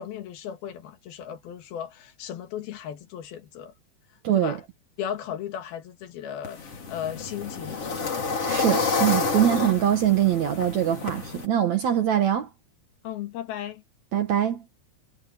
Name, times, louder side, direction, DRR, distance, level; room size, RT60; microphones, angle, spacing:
voice 1, 0.0-3.7 4.3-4.6 5.0-8.1 13.0-13.8, left 10 dB, 65° left, 3.4 m, -36 dB
voice 2, 4.2-4.6 8.5-12.5 14.1-14.6, right 11 dB, 60° right, 2.0 m, -23 dB
sound 1, 6.4-11.5, left 4 dB, 35° left, 4.4 m, -29 dB
omnidirectional pair, 4.9 m